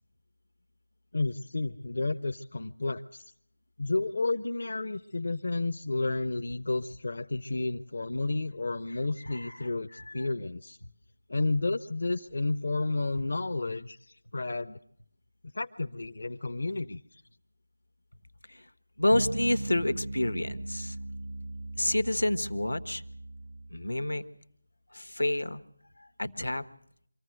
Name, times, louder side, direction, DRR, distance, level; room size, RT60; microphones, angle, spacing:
voice 1, 1.1-3.3 3.8-10.8 11.3-14.8 15.4-17.2, left 2 dB, 60° left, 7 dB, 0.7 m, -31 dB
voice 2, 9.3-9.6 10.0-10.3 10.8-10.9 18.5-18.6 19.0-20.9 21.8-23.0 23.7-24.2 24.9-25.6 26.2-26.6, left 1 dB, 90° left, 10 dB, 1.3 m, -29 dB
sound 1, 19.1-23.9, right 2 dB, 75° right, 1.3 m, -38 dB
25.0 x 14.5 x 7.8 m, 0.68 s
figure-of-eight pair, 165°, 0 cm